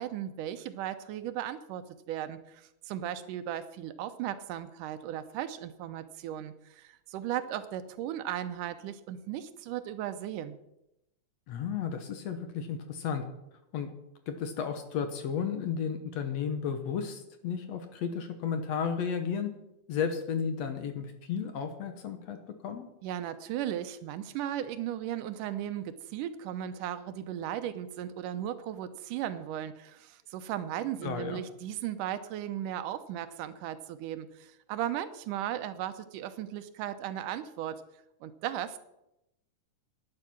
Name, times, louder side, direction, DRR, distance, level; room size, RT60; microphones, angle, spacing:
voice 1, 0.0-10.6 23.0-37.8 38.2-38.8, right 11 dB, 85° right, 12 dB, 2.3 m, -36 dB
voice 2, 11.5-13.2 13.7-13.9 14.3-19.5 19.9-22.4 22.6-22.8 31.0-31.4, left 7 dB, 65° left, 8 dB, 2.0 m, -33 dB
11.5 x 10.0 x 5.9 m, 0.86 s
omnidirectional pair, 3.8 m